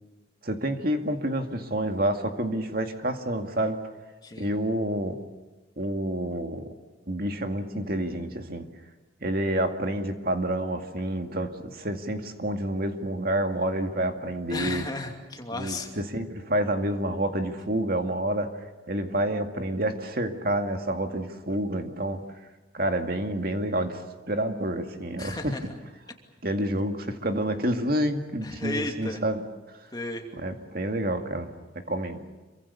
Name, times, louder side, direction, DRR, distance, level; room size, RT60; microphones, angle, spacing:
voice 1, 0.4-3.8 4.4-5.2 5.8-6.7 7.1-8.7 9.2-14.8 15.5-18.5 18.9-22.2 22.7-25.6 26.4-29.4 30.3-31.5 31.9-32.2, right 1 dB, 50° right, 5 dB, 2.2 m, -28 dB
voice 2, 14.5-15.9 25.2-25.7 26.7-26.9 28.4-29.2 29.9-30.3, left 2 dB, 20° left, 3 dB, 2.6 m, -34 dB
27.5 x 24.0 x 6.9 m, 1.2 s
head